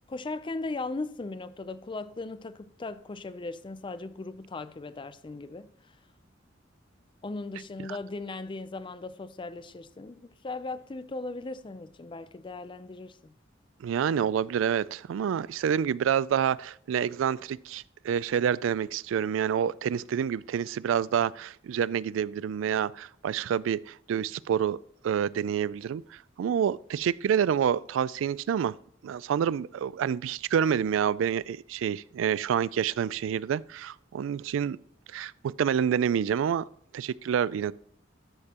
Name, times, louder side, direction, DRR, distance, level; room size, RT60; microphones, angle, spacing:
voice 1, 0.1-6.0 7.2-13.3, left 3 dB, 25° left, 0.4 m, -38 dB
voice 2, 13.8-24.8 25.0-28.7 29.0-34.8 35.1-36.7 36.9-37.7, right 8 dB, 85° right, 0.3 m, -28 dB
13.0 x 6.6 x 2.9 m
head